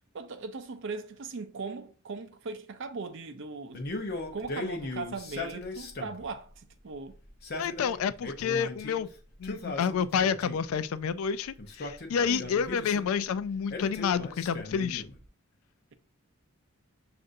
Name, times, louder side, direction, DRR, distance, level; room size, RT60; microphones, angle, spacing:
voice 1, 0.1-3.9 4.1-7.2 12.3-12.8, right 4 dB, 60° right, 0.5 m, -39 dB
Male speech man speaking, 3.7-6.3 7.3-9.0 9.4-10.7 11.6-13.1 13.7-15.2, left 2 dB, 45° left, 0.7 m, -38 dB
voice 2, 7.6-9.1 9.4-15.0, left 7 dB, 70° left, 0.3 m, -29 dB
6.4 x 2.5 x 2.6 m
head